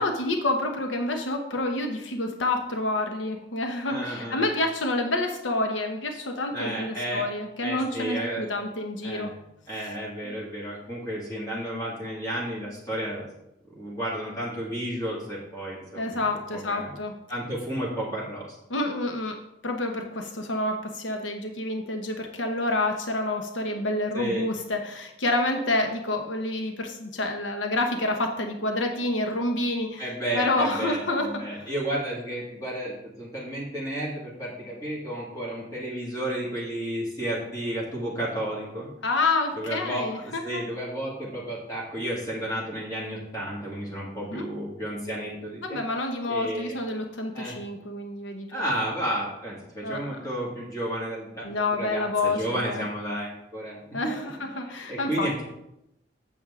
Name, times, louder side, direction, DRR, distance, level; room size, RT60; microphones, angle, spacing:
voice 1, 0.0-9.3 10.2-10.3 15.9-17.1 18.7-19.4 19.6-31.6 39.0-40.6 44.3-44.4 45.6-48.6 49.8-50.2 51.4-52.8 53.9-55.4, left 2 dB, 80° left, 4 dB, 1.0 m, -28 dB
voice 2, 3.9-4.5 6.5-7.2 7.6-8.5 9.0-9.3 9.7-13.3 13.8-16.2 16.5-16.9 17.3-18.6 24.1-24.4 30.0-38.9 39.5-45.8 46.3-46.8 47.3-47.6 48.5-54.3 54.6-55.4, right 1 dB, 20° left, -6 dB, 2.2 m, -32 dB
9.0 x 7.2 x 3.7 m, 0.85 s
head